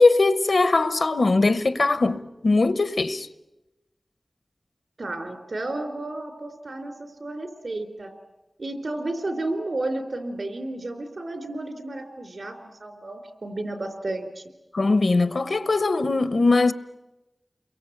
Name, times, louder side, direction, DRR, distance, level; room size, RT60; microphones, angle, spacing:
voice 1, 0.0-3.3 14.7-16.7, left 3 dB, 70° left, 1.0 m, -20 dB
voice 2, 5.0-8.1 8.6-12.6 12.8-14.4, right 2 dB, 70° right, 3.8 m, -32 dB
29.5 x 23.0 x 8.1 m
wide cardioid pair, 75°, 0 cm